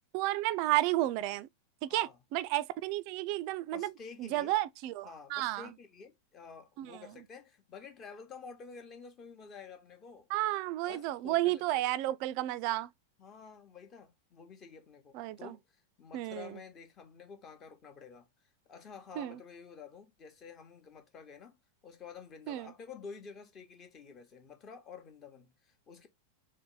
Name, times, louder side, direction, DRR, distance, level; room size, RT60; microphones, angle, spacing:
voice 1, 0.1-1.5 1.8-3.9 4.2-5.7 6.8-7.1 10.3-12.9 15.1-15.5 16.1-16.6 19.2-19.4 22.5-22.7, right 16 dB, 45° right, 0.3 m, -32 dB
voice 2, 1.9-2.2 3.7-4.6 5.0-10.3 10.9-11.8 13.2-18.3 18.7-21.6 21.8-26.1, left 5 dB, 30° left, 0.9 m, -50 dB
3.9 x 2.1 x 3.8 m
figure-of-eight pair, 90°, 0 cm